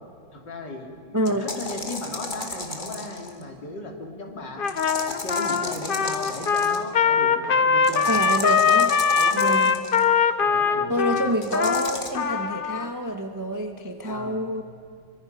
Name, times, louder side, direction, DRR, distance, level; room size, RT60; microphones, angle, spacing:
voice 1, 0.3-4.6 5.1-8.2 9.2-9.7 10.4-11.0 14.0-14.5, left 2 dB, 60° left, 1 dB, 3.4 m, -36 dB
voice 2, 1.1-1.5 8.1-8.9 9.3-9.7 10.9-14.6, equal, 15° right, 5 dB, 0.9 m, -27 dB
sound 1, 1.2-3.4 4.7-6.9 7.8-10.0 11.4-12.1, left 3 dB, 25° left, 1.8 m, -34 dB
Trumpet, 4.6-12.9, left 6 dB, 85° left, 0.4 m, -22 dB
26.0 x 24.5 x 5.5 m, 2.3 s
omnidirectional pair, 2.2 m